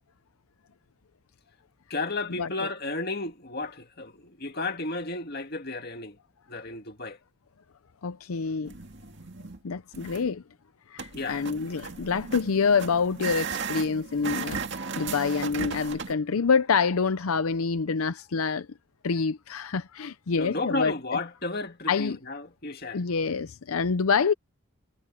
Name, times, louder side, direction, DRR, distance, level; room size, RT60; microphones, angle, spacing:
voice 1, 1.9-6.2 6.5-7.2 11.1-11.4 20.4-23.0, left 3 dB, 45° left, 2.2 m, -33 dB
voice 2, 8.0-8.7 9.6-10.4 10.9-14.6 15.0-18.7 19.0-20.9 21.9-22.2 22.9-24.3, left 5 dB, 90° left, 0.6 m, -26 dB
sound 1, 8.6-9.6 9.9-10.3 11.0-16.1, right 5 dB, 55° right, 2.1 m, -36 dB
head